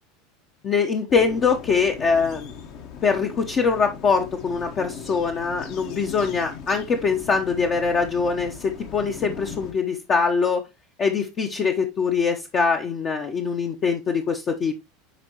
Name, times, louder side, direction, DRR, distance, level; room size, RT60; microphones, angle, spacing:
voice 1, 0.6-2.5 3.0-10.6 11.0-14.7, left 5 dB, 35° left, 3 dB, 0.9 m, -23 dB
sound 1, 1.1-9.7, left 6 dB, 50° left, 1.4 m, -39 dB
10.0 x 4.5 x 2.9 m, 0.23 s
figure-of-eight pair, 75°, 0 cm